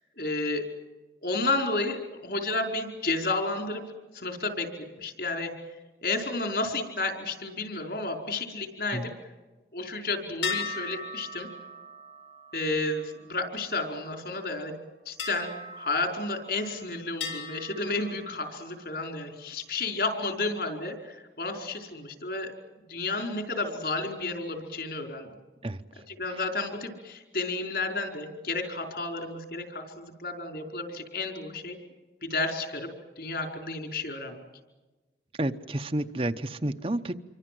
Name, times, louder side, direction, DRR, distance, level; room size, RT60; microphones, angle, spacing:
voice 1, 0.2-0.6 1.2-3.8 4.1-4.7 5.0-5.5 6.0-9.1 9.7-11.5 12.5-14.8 15.0-22.5 22.9-25.3 26.1-31.8 32.2-32.9 33.2-34.5, left 3 dB, 60° left, 4 dB, 4.9 m, -31 dB
sound 1, 10.4-14.1 15.2-16.7 17.2-18.9, left 4 dB, 90° left, 7.2 m, -39 dB
voice 2, 35.4-37.2, right 1 dB, 30° right, 8 dB, 0.9 m, -30 dB
27.5 x 24.5 x 7.8 m, 1.2 s
head